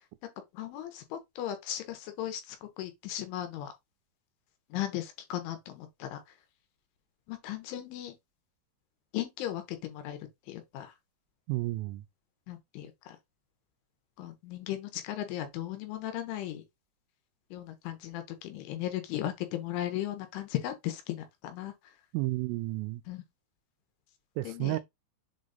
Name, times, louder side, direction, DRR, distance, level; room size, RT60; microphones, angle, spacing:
voice 1, 0.5-3.7 4.7-6.2 7.3-8.1 9.1-10.2 10.5-10.9 12.5-13.2 14.2-16.6 17.5-21.7 23.1-23.2 24.4-24.8, left 12 dB, 80° left, 3.2 m, -36 dB
voice 2, 11.5-12.0 22.1-23.0 24.4-24.8, right 19 dB, 85° right, 3.1 m, -31 dB
7.8 x 3.0 x 4.0 m
omnidirectional pair, 5.9 m